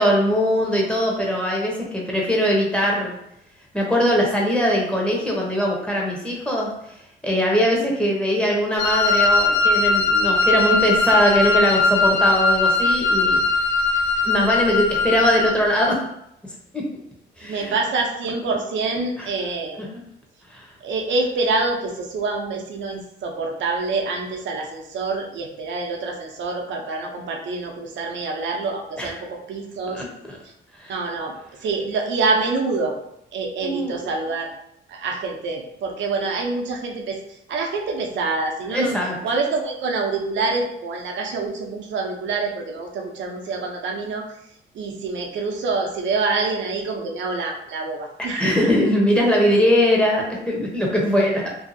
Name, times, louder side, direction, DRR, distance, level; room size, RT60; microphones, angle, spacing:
voice 1, 0.0-3.2 3.7-6.7 7.2-13.4 14.2-16.0 16.7-17.0 17.4-17.7 19.2-19.3 19.8-19.9 20.5-20.7 29.0-29.1 29.9-30.4 30.8-30.9 33.6-33.9 38.7-39.2 48.4-51.4, equal, 5° left, -3 dB, 0.8 m, -21 dB
Wind instrument woodwind instrument, 8.8-15.5, left 3 dB, 60° left, 0.5 m, -19 dB
voice 2, 17.4-19.8 20.8-30.0 30.9-31.3 31.6-32.9 33.3-34.5 34.9-37.2 37.5-39.0 39.2-44.2 44.7-48.7, right 3 dB, 70° right, 2 dB, 0.6 m, -26 dB
2.7 x 2.3 x 2.6 m, 0.78 s
cardioid pair, 90°, 20 cm